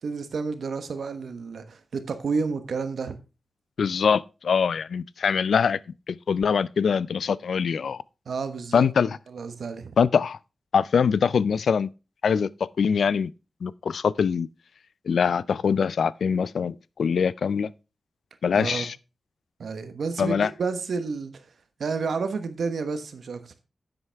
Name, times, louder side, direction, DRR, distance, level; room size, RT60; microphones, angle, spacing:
voice 1, 0.0-3.2 8.3-8.9 9.3-9.9 18.5-18.8 19.6-21.5 21.8-23.6, right 4 dB, 80° right, 1.1 m, -30 dB
voice 2, 3.8-5.8 6.1-8.0 8.7-9.2 10.0-10.4 10.7-11.9 12.2-12.5 12.8-13.3 13.6-14.5 15.1-17.7 18.4-18.9 20.2-20.5, left 6 dB, 80° left, 0.3 m, -23 dB
10.0 x 7.9 x 3.4 m
wide cardioid pair, 90°, 0 cm